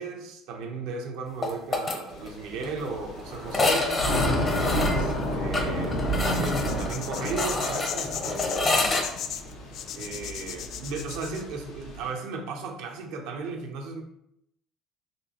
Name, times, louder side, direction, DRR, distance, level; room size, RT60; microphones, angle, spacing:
voice 1, 0.0-4.1 4.6-8.8 9.9-14.0, right 4 dB, 80° right, 3 dB, 0.7 m, -35 dB
sound 1, 1.4-2.0 2.3-2.4 2.6-2.7 3.5-9.1, left 2 dB, 25° left, 0.8 m, -28 dB
Thunder / Rain, 2.1-12.1, equal, 85° left, 1.1 m, -31 dB
sound 2, 6.2-11.4, left 9 dB, 60° left, 0.3 m, -36 dB
4.3 x 3.1 x 2.9 m, 0.77 s
cardioid pair, 125°, 0 cm